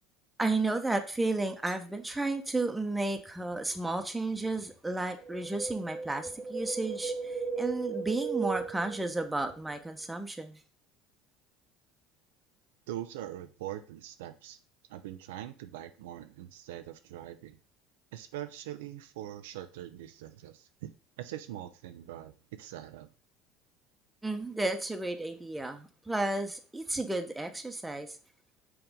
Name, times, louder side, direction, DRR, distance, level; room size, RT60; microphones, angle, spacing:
voice 1, 0.4-10.6 24.2-28.1, right 2 dB, 10° right, 1.1 m, -32 dB
Wind, 5.2-9.6 9.8-9.9, right 5 dB, 40° right, 1.1 m, -36 dB
voice 2, 12.9-14.6 14.9-17.6 18.1-20.9 21.2-22.3 22.6-23.1, right 12 dB, 80° right, 0.6 m, -42 dB
5.9 x 3.6 x 5.2 m
hypercardioid pair, 75°, 0 cm